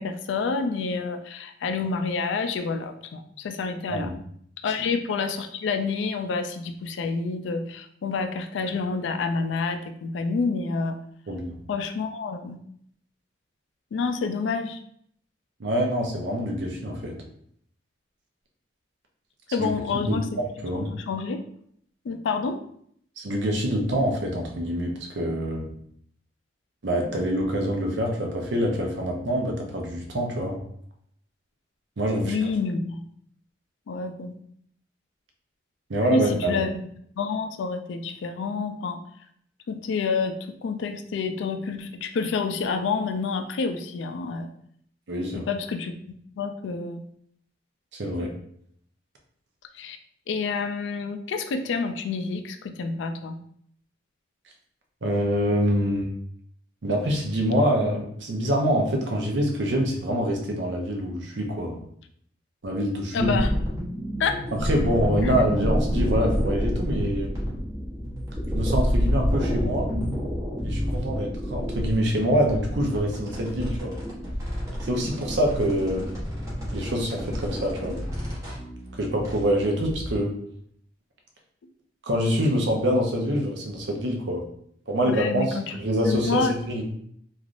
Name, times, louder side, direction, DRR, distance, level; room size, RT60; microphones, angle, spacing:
voice 1, 0.0-4.1 4.6-11.0 11.7-12.6 13.9-14.8 19.5-20.4 20.9-21.4 22.0-22.6 32.2-33.0 33.9-34.4 36.1-36.8 37.2-39.0 39.7-44.5 45.3-45.9 46.4-47.0 49.7-50.0 50.3-53.4 63.1-63.5 64.2-64.4 65.2-65.3 85.1-85.7 86.1-86.6, left 4 dB, 80° left, 7 dB, 0.3 m, -28 dB
voice 2, 15.6-17.2 19.6-20.2 20.6-20.9 23.2-25.7 26.8-30.6 32.0-32.4 35.9-36.6 45.1-45.4 48.0-48.3 55.0-56.1 56.8-61.8 62.6-63.4 64.5-67.3 68.5-69.9 70.6-73.9 74.8-76.0 76.7-78.0 78.9-80.3 82.0-84.5 84.9-86.9, equal, 75° right, 1 dB, 0.7 m, -25 dB
sound 1, 63.2-80.2, equal, 15° right, 0.8 m, -29 dB
3.2 x 2.5 x 2.5 m, 0.66 s
head